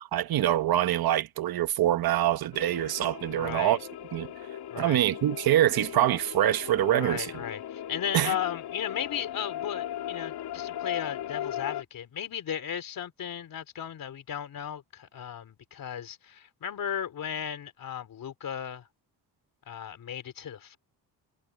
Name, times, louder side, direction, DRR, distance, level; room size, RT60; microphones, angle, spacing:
voice 1, 0.1-3.8 4.1-4.3 4.8-7.3 8.1-8.3, right 12 dB, 70° right, 1.1 m, -25 dB
sound 1, 2.5-11.8, left 11 dB, 75° left, 2.7 m, -38 dB
voice 2, 3.3-3.8 4.7-5.1 6.9-18.9 19.7-20.8, left 9 dB, 60° left, 3.7 m, -36 dB
cardioid pair, 150°, 38 cm